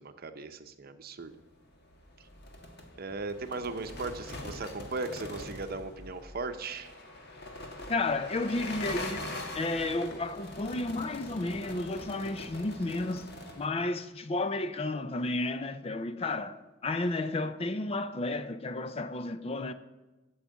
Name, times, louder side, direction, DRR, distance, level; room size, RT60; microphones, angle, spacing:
voice 1, 0.0-1.4 2.2-2.3 3.0-6.9, right 3 dB, 50° right, 0.8 m, -37 dB
sound 1, 1.7-13.7, left 2 dB, 55° left, 1.6 m, -43 dB
voice 2, 7.9-13.3 13.6-19.7, left 2 dB, 30° left, 0.5 m, -32 dB
8.9 x 7.2 x 8.4 m
head